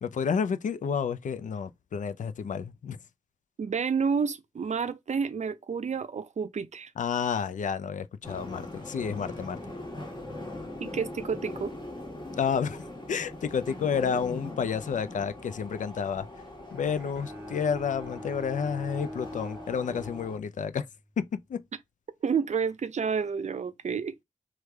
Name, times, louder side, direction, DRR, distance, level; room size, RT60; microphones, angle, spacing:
voice 1, 0.0-3.0 7.0-9.6 12.4-16.3 16.7-20.9 21.2-21.6, left 6 dB, 60° left, 0.4 m, -30 dB
voice 2, 3.6-6.9 10.8-11.7 22.2-24.2, right 6 dB, 55° right, 0.5 m, -30 dB
sound 1, 8.2-20.4, left 1 dB, 35° left, 1.3 m, -41 dB
Bowed string instrument, 16.7-20.9, left 1 dB, 15° right, 0.8 m, -43 dB
3.2 x 2.3 x 3.3 m
cardioid pair, 65°, 14 cm